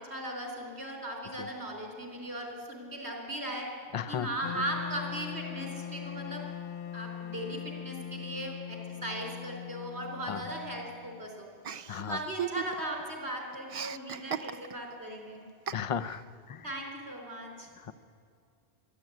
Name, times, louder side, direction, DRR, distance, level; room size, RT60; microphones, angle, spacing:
voice 1, 0.0-3.7 4.1-6.4 6.9-11.5 12.1-15.4 16.6-17.7, right 1 dB, 85° right, 1 dB, 4.2 m, -38 dB
voice 2, 3.9-4.3 4.5-4.6 10.3-10.4 11.9-12.2 15.7-16.2 16.5-16.6 17.9-18.0, left 8 dB, 40° left, 14 dB, 0.6 m, -34 dB
Wind instrument woodwind instrument, 4.4-11.4, left 9 dB, 60° left, 1.0 m, -41 dB
Chuckle chortle, 11.6-13.0 13.3-14.9 15.7-16.2, right 8 dB, 45° right, 0.5 m, -37 dB
26.0 x 11.0 x 9.2 m, 2.3 s
omnidirectional pair, 1.1 m